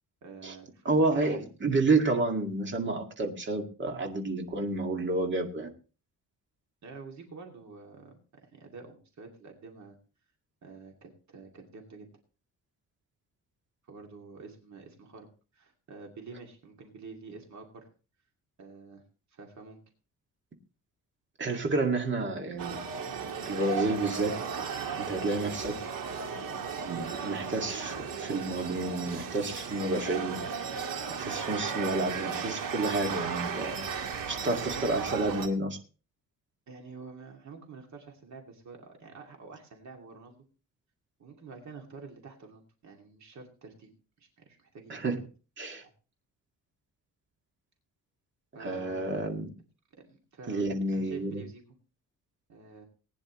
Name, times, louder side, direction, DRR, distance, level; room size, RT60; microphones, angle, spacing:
voice 1, 0.2-1.5 6.8-10.0 10.6-12.1 13.9-15.3 15.5-17.9 18.6-19.0 19.3-19.8 36.7-40.4 41.2-43.9 44.2-45.0 45.8-45.9 48.5-49.3 50.1-51.6 52.5-52.9, right 4 dB, 55° right, 2 dB, 2.5 m, -48 dB
voice 2, 0.9-5.7 21.4-22.8 23.5-24.3 25.0-25.8 26.8-30.4 31.2-33.8 34.3-35.8 44.9-45.2 45.6-45.8 48.6-49.5 50.5-51.4, right 2 dB, 35° right, 3 dB, 2.1 m, -30 dB
sound 1, 22.6-35.5, right 6 dB, 70° right, 2.0 m, -35 dB
19.5 x 9.8 x 3.1 m, 0.35 s
wide cardioid pair, 160°, 34 cm